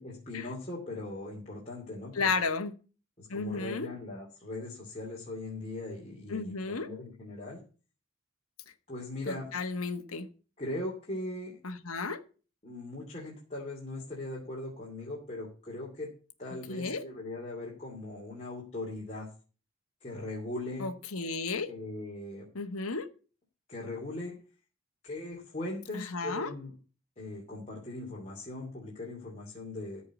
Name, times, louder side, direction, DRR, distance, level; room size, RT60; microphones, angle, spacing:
voice 1, 0.0-2.5 3.2-7.6 8.9-9.5 10.6-11.6 12.6-16.1 16.4-19.3 20.0-20.9 21.7-22.5 23.7-24.4 25.0-26.7 27.2-30.0, left 2 dB, 30° left, 2.6 m, -39 dB
voice 2, 2.1-2.7 3.3-3.9 6.3-6.9 9.3-10.3 11.6-12.2 16.7-17.0 20.8-21.7 22.5-23.1 25.9-26.5, left 4 dB, 85° left, 1.3 m, -33 dB
14.0 x 4.8 x 8.2 m
head